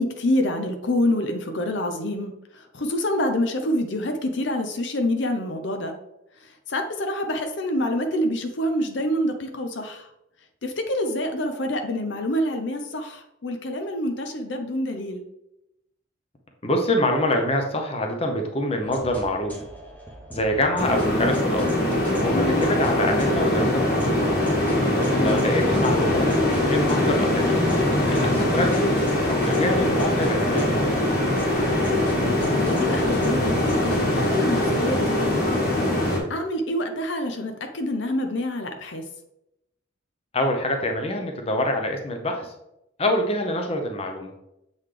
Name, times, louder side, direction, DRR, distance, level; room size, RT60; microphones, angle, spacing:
voice 1, 0.0-5.9 6.7-10.1 10.6-15.2 22.3-22.6 25.1-25.4 32.2-35.8 36.3-39.0, left 1 dB, 70° left, 5 dB, 0.6 m, -27 dB
voice 2, 16.6-19.6 20.3-21.7 22.2-24.4 25.2-27.7 28.1-31.0 40.3-42.5 43.0-44.3, left 1 dB, 30° left, 3 dB, 0.7 m, -25 dB
sound 1, 18.8-34.1, equal, 10° left, 1.0 m, -42 dB
sound 2, 20.8-36.2, left 1 dB, 50° left, 1.8 m, -22 dB
7.2 x 4.0 x 3.3 m, 0.84 s
head